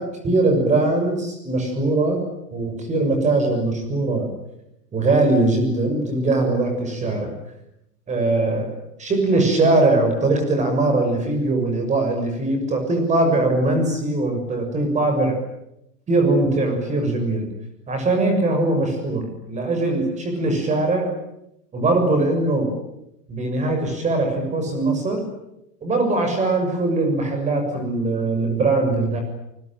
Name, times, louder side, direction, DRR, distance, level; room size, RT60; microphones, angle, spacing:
voice 1, 0.0-2.2 2.5-4.3 4.9-7.3 8.1-8.7 9.0-15.4 16.1-17.5 17.9-21.1 21.7-22.8 23.3-25.3 25.8-29.2, right 2 dB, 15° right, 5 dB, 6.8 m, -21 dB
29.5 x 21.0 x 9.1 m, 0.83 s
supercardioid pair, 165°, 48 cm